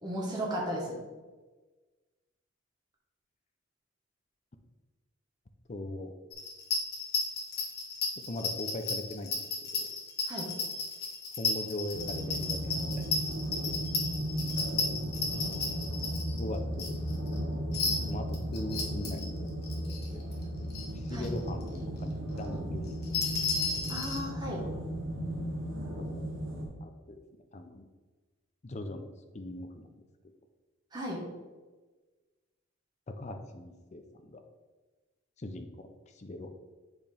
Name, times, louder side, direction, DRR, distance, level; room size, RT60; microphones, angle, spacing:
voice 1, 0.0-1.0 10.3-10.5 21.1-21.3 23.9-24.6 30.9-31.2, equal, 20° right, -3 dB, 1.5 m, -35 dB
voice 2, 5.7-6.1 8.2-9.4 9.8-9.9 11.4-13.2 13.7-13.8 16.4-17.0 18.1-19.3 19.7-20.3 20.6-20.7 20.9-22.8 23.3-23.4 26.0-26.2 26.8-27.2 27.5-27.9 28.6-29.1 29.3-29.8 33.1-34.4 35.4-36.5, left 1 dB, 35° left, 6 dB, 0.6 m, -40 dB
sound 1, 6.3-17.4 17.7-19.2 19.6-20.4 20.7-20.8 21.1-21.5 21.7-21.8 22.9-24.2, left 4 dB, 50° left, 1.2 m, -33 dB
sound 2, 11.9-26.7, right 1 dB, 75° right, 1.5 m, -36 dB
sound 3, 15.7-23.5, equal, 5° right, 1.9 m, -40 dB
7.8 x 4.5 x 3.5 m, 1.3 s
head